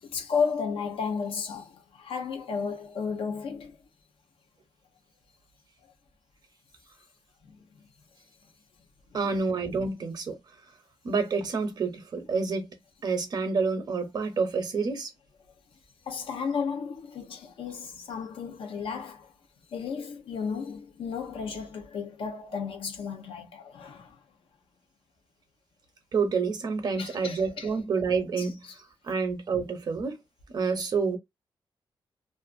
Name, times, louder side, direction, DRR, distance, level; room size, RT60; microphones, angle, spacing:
voice 1, 0.0-3.8 7.5-7.6 9.1-9.2 16.1-19.3 19.7-24.2 27.0-27.7 28.4-28.7, left 6 dB, 85° left, 0.7 m, -33 dB
voice 2, 9.1-10.4 11.0-12.7 13.0-15.1 26.1-28.6 29.0-30.2 30.5-31.2, right 4 dB, 50° right, 0.7 m, -28 dB
2.5 x 2.4 x 2.5 m
wide cardioid pair, 155°, 9 cm